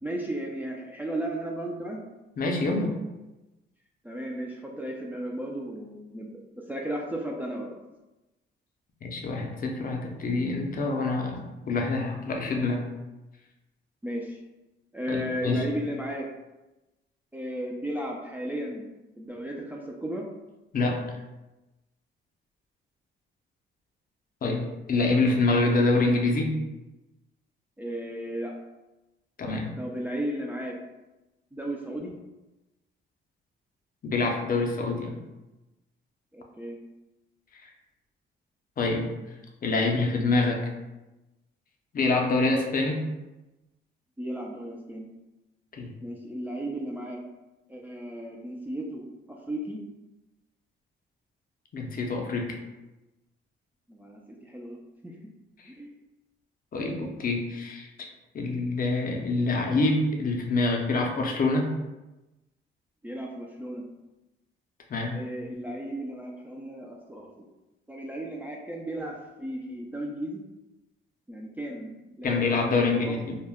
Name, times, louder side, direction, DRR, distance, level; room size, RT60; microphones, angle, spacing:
voice 1, 0.0-2.0 4.0-7.8 14.0-14.4 14.9-16.3 17.3-18.9 19.2-20.3 27.8-28.5 29.8-30.8 31.5-32.1 36.3-36.8 44.2-45.1 46.0-47.2 47.7-49.8 53.9-54.8 55.0-55.2 55.6-56.0 63.0-63.8 65.1-67.3 67.9-70.4 71.3-73.2, right 1 dB, 10° right, -1 dB, 0.3 m, -35 dB
voice 2, 2.4-2.9 9.0-12.9 15.1-15.7 20.7-21.0 24.4-26.5 29.4-29.7 34.0-35.2 37.6-37.7 38.8-39.1 39.6-40.6 41.9-43.0 45.8-45.9 51.7-52.5 56.7-57.9 58.3-61.7 64.9-65.2 72.2-73.4, left 3 dB, 45° left, 1 dB, 0.5 m, -26 dB
2.2 x 2.1 x 3.4 m, 1.0 s
cardioid pair, 90°, 20 cm